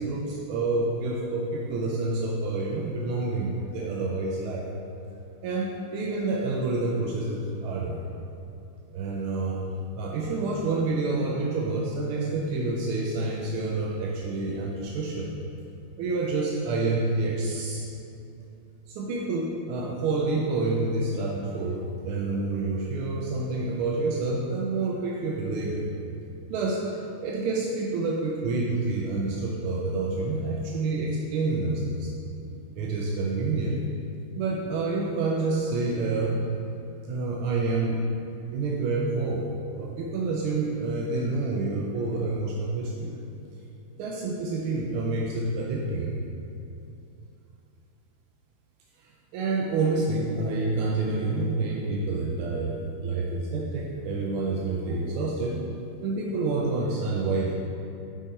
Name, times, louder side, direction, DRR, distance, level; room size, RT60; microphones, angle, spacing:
voice 1, 0.0-4.7 5.4-8.0 8.9-9.6 9.9-15.3 16.0-17.9 18.9-25.9 26.5-32.1 32.7-33.8 34.3-36.4 37.0-38.0 38.5-43.2 44.0-46.1 49.0-55.6 56.0-57.5, right 3 dB, 90° right, -2 dB, 1.5 m, -28 dB
5.6 x 5.0 x 4.1 m, 2.7 s
omnidirectional pair, 2.3 m